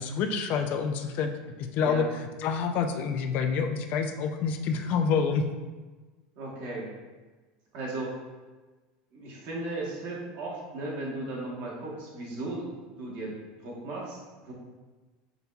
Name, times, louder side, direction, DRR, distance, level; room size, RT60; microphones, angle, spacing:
voice 1, 0.0-1.3 1.6-2.1 2.4-5.5, left 6 dB, 50° left, 6 dB, 0.3 m, -27 dB
voice 2, 6.4-6.9 7.7-8.2 9.1-12.7 13.0-14.5, right 2 dB, 55° right, -4 dB, 1.2 m, -36 dB
5.2 x 2.9 x 2.3 m, 1.3 s
supercardioid pair, 135°, 4 cm